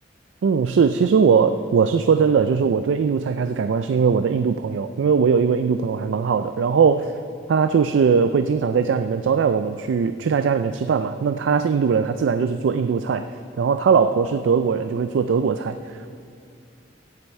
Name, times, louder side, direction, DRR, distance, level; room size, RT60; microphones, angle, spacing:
voice 1, 0.4-7.2 7.5-16.1, right 6 dB, 90° right, 10 dB, 0.3 m, -20 dB
16.5 x 8.0 x 4.3 m, 2.4 s
head